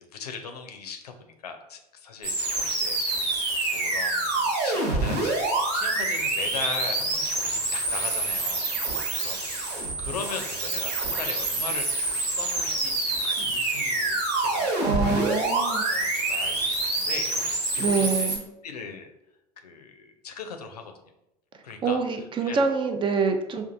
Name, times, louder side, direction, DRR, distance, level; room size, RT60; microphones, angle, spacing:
voice 1, 0.1-3.0 3.3-5.4 5.7-8.9 9.2-15.5 15.8-18.3 18.6-19.1 19.6-21.1 21.6-22.0 22.4-22.6, left 5 dB, 80° left, 6 dB, 0.5 m, -39 dB
sound 1, 2.2-18.4, right 2 dB, 65° right, 1.3 m, -27 dB
voice 2, 14.8-15.8 17.8-18.4 21.8-23.6, right 4 dB, 25° right, 6 dB, 0.5 m, -25 dB
5.1 x 2.5 x 2.6 m, 0.86 s
figure-of-eight pair, 75°, 20 cm